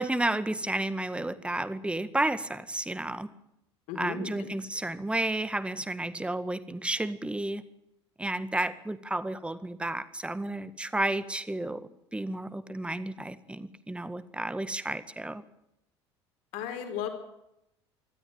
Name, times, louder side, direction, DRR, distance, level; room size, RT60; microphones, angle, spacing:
voice 1, 0.0-3.3 3.9-7.6 8.2-15.4, right 1 dB, 5° right, 13 dB, 1.8 m, -32 dB
voice 2, 3.9-4.5 16.5-17.1, left 7 dB, 60° left, 5 dB, 4.5 m, -35 dB
26.0 x 13.5 x 9.2 m, 0.84 s
figure-of-eight pair, 65°, 15 cm